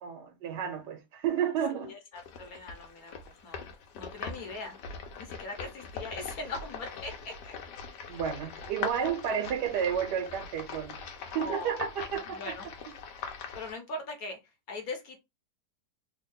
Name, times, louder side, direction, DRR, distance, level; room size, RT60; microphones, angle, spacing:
voice 1, 0.0-1.9 8.1-11.0 11.3-12.5, right 8 dB, 90° right, 1.4 m, -31 dB
voice 2, 1.7-3.7 3.9-4.8 5.2-7.5 11.3-12.6 13.5-14.4 14.7-15.2, left 3 dB, 65° left, 1.3 m, -40 dB
sound 1, 2.1-13.7, left 5 dB, 90° left, 1.4 m, -42 dB
3.4 x 2.3 x 3.6 m
omnidirectional pair, 1.8 m